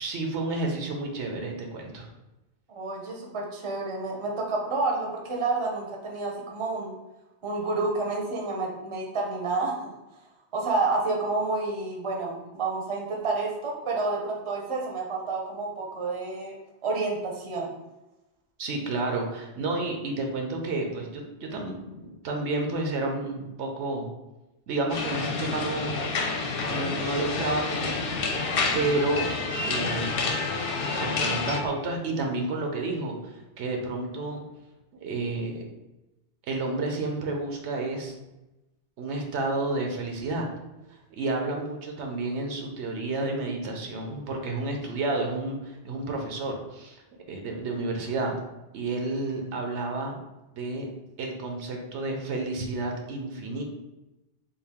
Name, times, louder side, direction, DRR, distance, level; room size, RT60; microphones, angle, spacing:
voice 1, 0.0-2.1 18.6-24.1 24.7-26.0 26.7-28.1 28.7-29.4 29.6-30.2 31.0-34.4 35.0-35.7 36.5-38.2 39.0-40.5 41.1-47.0 47.3-48.3 48.7-50.2 50.6-50.9 51.2-53.6, right 2 dB, 85° right, 2 dB, 1.0 m, -30 dB
voice 2, 2.7-6.9 7.4-9.9 10.5-16.5 16.8-17.8, right 3 dB, 35° right, 0 dB, 0.6 m, -29 dB
sound 1, 24.9-31.6, left 4 dB, 65° left, 0.7 m, -29 dB
3.7 x 2.4 x 3.5 m, 0.99 s
omnidirectional pair, 1.1 m